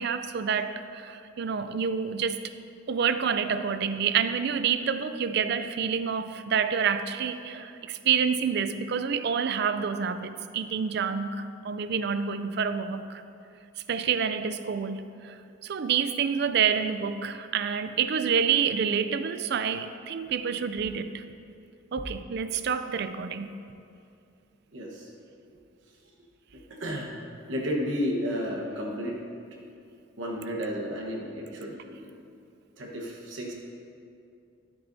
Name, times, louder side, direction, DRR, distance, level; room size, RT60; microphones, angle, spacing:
voice 1, 0.0-2.4 2.9-13.2 13.9-21.2 21.9-23.5, right 7 dB, 55° right, 11 dB, 0.4 m, -28 dB
voice 2, 24.7-25.1 26.5-27.1 27.5-29.2 30.2-32.1 32.8-33.5, equal, 75° right, -1 dB, 1.2 m, -32 dB
12.5 x 8.1 x 2.7 m, 2.5 s
head